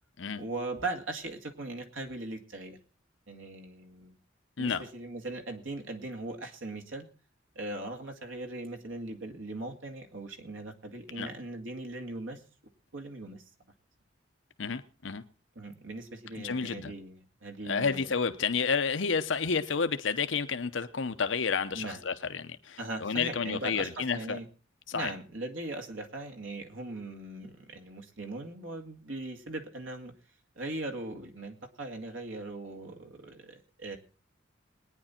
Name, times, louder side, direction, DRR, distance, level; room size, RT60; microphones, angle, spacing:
voice 1, 0.4-2.8 3.3-4.2 4.6-7.1 7.5-12.4 12.9-13.4 15.6-18.1 21.7-22.0 22.8-24.5 24.9-30.1 30.6-34.0, right 2 dB, 90° right, 2.3 m, -39 dB
voice 2, 14.6-15.2 16.4-16.9 17.7-24.4 24.9-25.1, left 5 dB, 80° left, 0.8 m, -30 dB
21.5 x 10.0 x 4.4 m
head